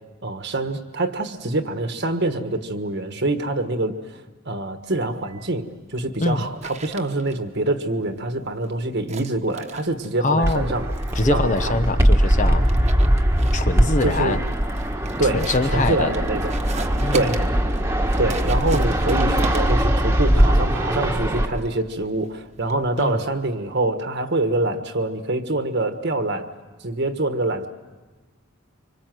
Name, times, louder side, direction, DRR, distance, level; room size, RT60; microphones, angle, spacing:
voice 1, 0.2-4.0 4.4-5.6 5.9-10.9 11.2-11.7 14.0-14.4 15.2-15.5 15.7-16.4 17.1-17.4 18.2-26.5 26.8-27.7, right 2 dB, 55° right, 7 dB, 1.4 m, -25 dB
sound 1, 4.9-23.5, right 3 dB, 30° right, 1.3 m, -38 dB
voice 2, 10.2-10.7 11.1-12.6 13.5-14.4 15.2-16.1 17.0-17.4 23.0-23.2, left 2 dB, 35° left, 9 dB, 0.9 m, -23 dB
Fixed-wing aircraft airplane, 10.4-21.5, equal, 10° right, 1.4 m, -21 dB
25.5 x 25.0 x 7.7 m, 1.2 s
head